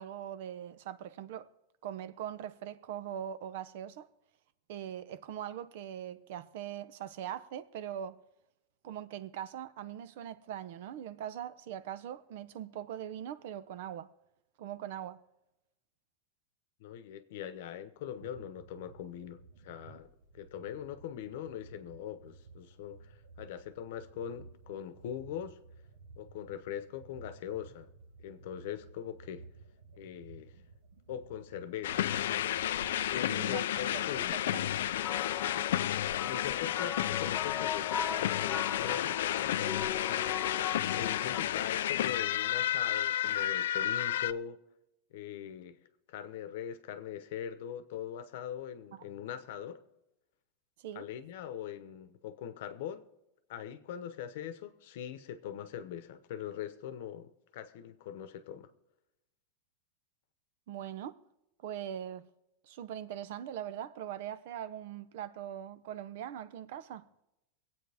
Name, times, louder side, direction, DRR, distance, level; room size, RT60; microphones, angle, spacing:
voice 1, 0.0-1.5 1.8-4.1 4.7-8.2 8.8-14.1 14.6-15.2 33.3-33.8 34.5-34.7 48.9-49.0 50.8-51.1 60.7-61.2 61.6-62.2 62.6-67.1, right 10 dB, 55° right, 0.6 m, -41 dB
voice 2, 16.8-20.1 20.3-25.6 26.2-27.9 28.2-29.5 30.0-30.6 31.1-32.1 33.1-34.4 36.2-40.4 40.9-44.6 45.1-45.8 46.1-49.8 50.9-53.1 53.5-58.7, left 9 dB, 55° left, 0.9 m, -42 dB
sound 1, 18.0-33.6, right 4 dB, 75° right, 1.5 m, -55 dB
sound 2, 31.8-44.3, left 12 dB, 85° left, 0.4 m, -32 dB
sound 3, 35.0-41.4, left 9 dB, 20° left, 0.4 m, -39 dB
24.5 x 8.7 x 3.5 m
supercardioid pair, 180°, 0 cm